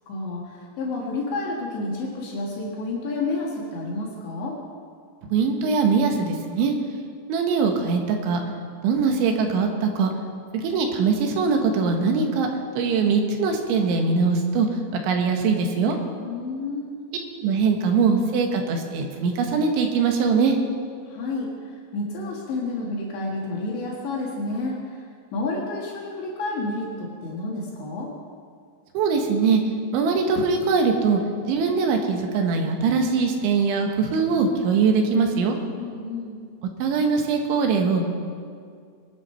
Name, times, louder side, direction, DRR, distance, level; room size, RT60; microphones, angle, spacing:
voice 1, 0.1-4.6 16.2-16.9 21.1-25.0 25.3-28.1 35.8-36.4, left 2 dB, 70° left, -3 dB, 3.9 m, -30 dB
voice 2, 5.3-6.8 7.3-8.4 8.8-10.1 10.5-12.5 12.8-14.7 15.0-16.0 17.4-20.6 29.0-29.6 29.9-35.6 36.8-38.0, right 5 dB, 75° right, 3 dB, 3.7 m, -22 dB
22.0 x 9.9 x 5.7 m, 2.2 s
omnidirectional pair, 5.4 m